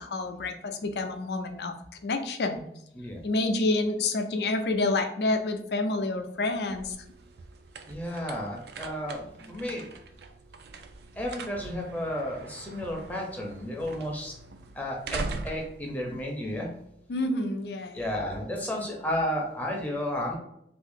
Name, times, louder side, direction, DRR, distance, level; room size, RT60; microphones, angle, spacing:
voice 1, 0.0-1.7 2.0-2.6 3.2-7.0 17.1-18.1, left 2 dB, 70° left, 6 dB, 0.5 m, -28 dB
sound 1, 6.4-17.1, right 3 dB, 65° right, 0.4 m, -42 dB
voice 2, 7.9-9.9 11.2-14.3 14.8-16.7 17.9-20.4, left 1 dB, 10° left, -1 dB, 0.6 m, -32 dB
2.7 x 2.6 x 3.6 m, 0.75 s
head